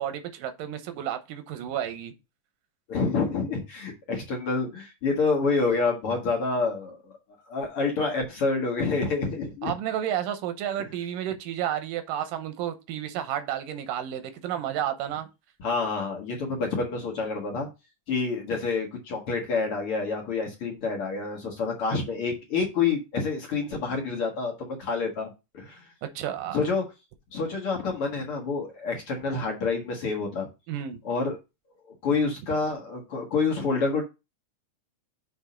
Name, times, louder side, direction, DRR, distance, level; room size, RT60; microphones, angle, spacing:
voice 1, 0.0-2.1 9.6-15.3 26.2-26.6 30.7-31.0, right 10 dB, 90° right, 2.5 m, -31 dB
voice 2, 2.9-7.1 7.5-9.7 10.8-10.9 15.6-17.7 18.1-25.8 26.5-26.8 27.3-30.5 31.0-31.4 32.0-34.0, left 4 dB, 50° left, 2.0 m, -28 dB
7.0 x 3.6 x 5.1 m
omnidirectional pair, 3.8 m